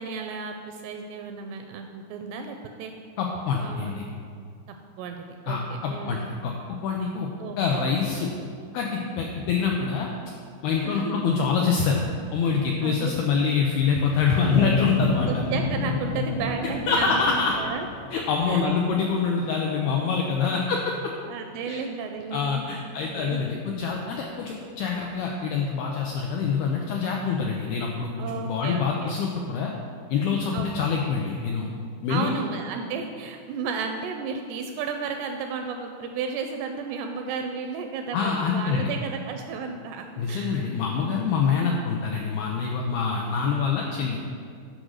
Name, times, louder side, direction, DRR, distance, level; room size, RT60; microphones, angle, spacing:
voice 1, 0.0-2.9 3.6-3.9 5.0-6.3 7.4-7.6 10.8-11.3 12.8-13.1 15.3-17.9 18.5-18.7 21.3-23.4 28.2-29.2 30.5-30.9 32.1-40.7 41.0-41.2, right 5 dB, 85° right, 5 dB, 2.4 m, -33 dB
voice 2, 3.2-4.1 5.5-6.5 6.8-7.3 7.6-8.3 8.7-10.1 10.6-12.0 12.3-15.4 16.9-17.5 18.1-21.1 21.7-21.8 22.3-29.7 30.1-31.7 32.0-32.3 38.1-38.9 40.2-44.2, left 5 dB, 85° left, 0 dB, 2.2 m, -25 dB
sound 1, 14.4-19.4 19.8-19.9, left 3 dB, 60° left, 1.7 m, -30 dB
10.0 x 5.1 x 6.3 m, 2.3 s
omnidirectional pair, 5.2 m